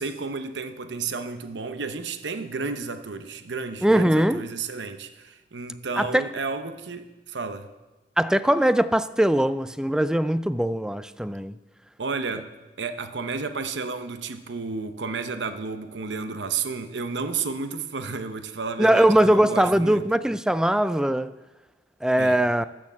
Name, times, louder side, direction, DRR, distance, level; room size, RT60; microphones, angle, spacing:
voice 1, 0.0-7.7 12.0-12.5 12.8-20.0 22.2-22.4, right 4 dB, 70° right, 0.8 m, -32 dB
voice 2, 3.8-4.5 6.0-6.3 8.2-11.6 18.8-21.3 22.0-22.7, right 1 dB, 5° right, 0.3 m, -21 dB
12.0 x 6.4 x 7.3 m
head